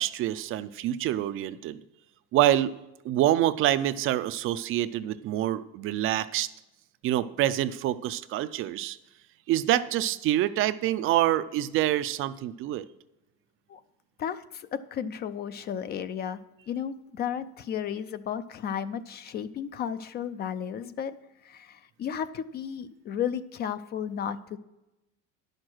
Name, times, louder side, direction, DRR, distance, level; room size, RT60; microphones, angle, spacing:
voice 1, 0.0-1.8 2.3-2.7 3.0-6.5 7.0-9.0 9.5-12.9, right 13 dB, 45° right, 13 dB, 0.4 m, -26 dB
voice 2, 14.2-21.2 21.4-24.6, left 8 dB, 35° left, 13 dB, 0.4 m, -34 dB
10.5 x 6.5 x 6.1 m, 0.95 s
cardioid pair, 150°, 30 cm